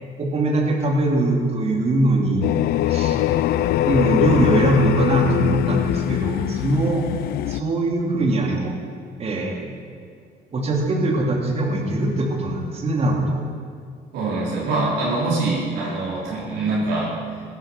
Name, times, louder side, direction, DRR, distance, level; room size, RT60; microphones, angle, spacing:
voice 1, 0.2-2.4 2.9-3.2 3.9-7.0 7.4-8.7 9.2-9.7 10.5-13.3, right 2 dB, 35° right, 1 dB, 2.7 m, -21 dB
sound 1, 2.4-7.6, left 13 dB, 70° left, 0.5 m, -22 dB
voice 2, 14.1-17.1, right 2 dB, 85° right, -8 dB, 4.8 m, -24 dB
16.0 x 12.0 x 5.8 m, 2.2 s
cardioid pair, 110°, 17 cm